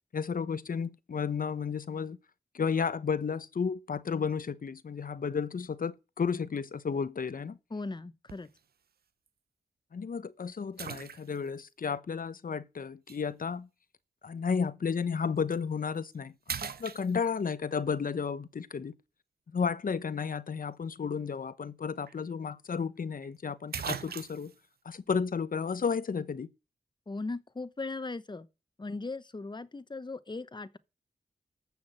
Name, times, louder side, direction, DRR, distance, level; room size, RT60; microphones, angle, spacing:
voice 1, 0.1-2.2 2.5-7.6 9.9-13.7 14.2-18.9 19.5-24.5 24.8-26.5, left 6 dB, 60° left, 0.9 m, -33 dB
voice 2, 7.7-8.5 27.1-28.5 28.8-30.8, left 3 dB, 25° left, 1.0 m, -38 dB
sound 1, 8.3-8.6 9.3-9.4 10.8-11.6 13.1-13.2 15.4-15.6 16.0-16.2 16.5-17.6 21.7-21.8 22.1-22.2 23.2-23.3 23.7-24.6, right 7 dB, 70° right, 0.7 m, -39 dB
14.0 x 6.0 x 7.4 m
cardioid pair, 70°, 17 cm